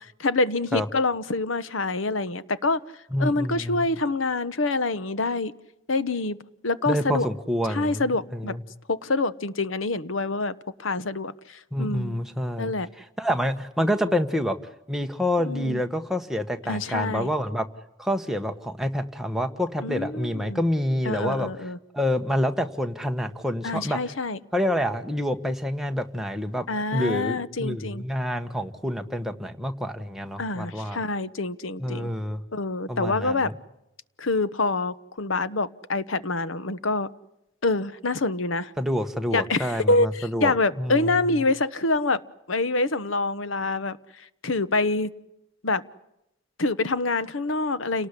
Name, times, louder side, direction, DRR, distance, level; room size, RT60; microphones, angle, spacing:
voice 1, 0.2-2.8 3.2-5.5 5.9-6.4 6.6-7.3 7.7-8.6 8.9-10.5 10.8-12.2 12.6-12.9 15.4-15.8 16.7-17.3 19.8-20.6 21.1-21.8 23.6-24.4 26.7-28.0 30.4-32.1 32.5-33.5 34.2-37.1 37.6-38.7 39.3-42.2 42.5-45.1 45.6-45.8 46.6-48.1, left 3 dB, 85° left, 16 dB, 1.1 m, -26 dB
voice 2, 3.1-3.9 6.9-8.6 11.7-14.6 14.9-17.7 18.0-21.5 21.9-24.0 24.5-26.7 26.9-31.0 31.8-32.4 32.9-33.5 38.8-41.2, equal, ahead, 5 dB, 1.4 m, -27 dB
30.0 x 19.0 x 9.9 m, 0.85 s
head